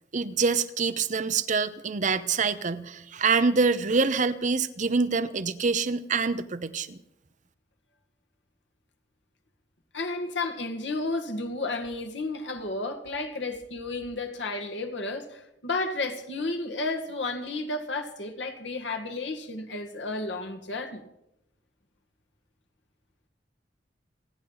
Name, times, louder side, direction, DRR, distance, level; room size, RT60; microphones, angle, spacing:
voice 1, 0.1-7.0, right 4 dB, 45° right, 0.7 m, -25 dB
voice 2, 9.9-21.0, left 2 dB, 80° left, 1.7 m, -32 dB
29.5 x 10.0 x 4.0 m
head